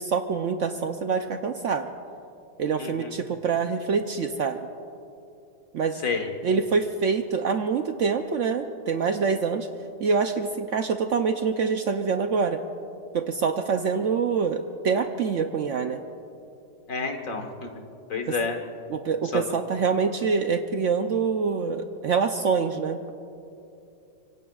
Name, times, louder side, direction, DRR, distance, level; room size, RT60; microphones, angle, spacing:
voice 1, 0.0-1.9 2.6-4.6 5.7-6.0 6.4-9.7 10.0-12.6 13.1-16.0 18.9-23.0, right 5 dB, 65° right, 7 dB, 0.7 m, -25 dB
voice 2, 2.8-3.2 6.0-6.3 16.9-17.7 18.1-18.6 19.3-19.4, left 4 dB, 50° left, 4 dB, 1.7 m, -29 dB
25.5 x 24.0 x 2.4 m, 2.7 s
omnidirectional pair, 1.8 m